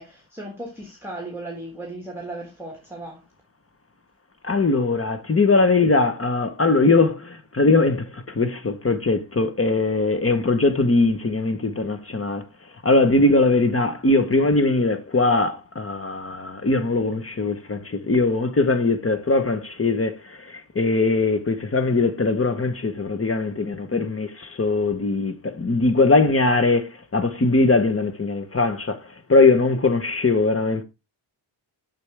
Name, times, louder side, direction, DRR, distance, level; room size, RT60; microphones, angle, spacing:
voice 1, 0.0-3.2 4.7-4.9, right 2 dB, 5° right, 1.5 m, -36 dB
voice 2, 4.4-12.5 12.8-29.0 29.3-30.8, left 3 dB, 30° left, 1.0 m, -21 dB
6.6 x 6.2 x 3.3 m
wide cardioid pair, 135°, 46 cm